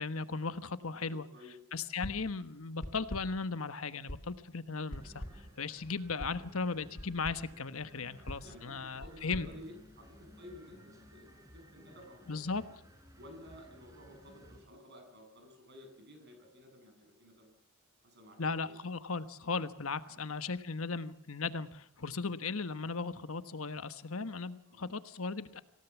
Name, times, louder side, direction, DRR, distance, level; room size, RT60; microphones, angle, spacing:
voice 1, 0.0-1.3 1.7-9.5 12.3-12.6 18.4-25.6, left 4 dB, 70° left, 12 dB, 1.3 m, -37 dB
voice 2, 0.9-1.6 5.7-5.9 8.4-12.6 13.2-17.5 18.0-18.8 20.1-20.2 24.7-24.9, left 1 dB, 55° right, 5 dB, 7.9 m, -54 dB
sound 1, 2.0-2.4 2.8-3.5 4.1-4.4 4.9-5.6 6.2-6.5 7.0-7.5 8.3-10.3, equal, 45° left, 3.7 m, -45 dB
sound 2, 4.9-14.6, equal, 15° right, 4.5 m, -57 dB
27.0 x 17.0 x 7.2 m, 0.65 s
head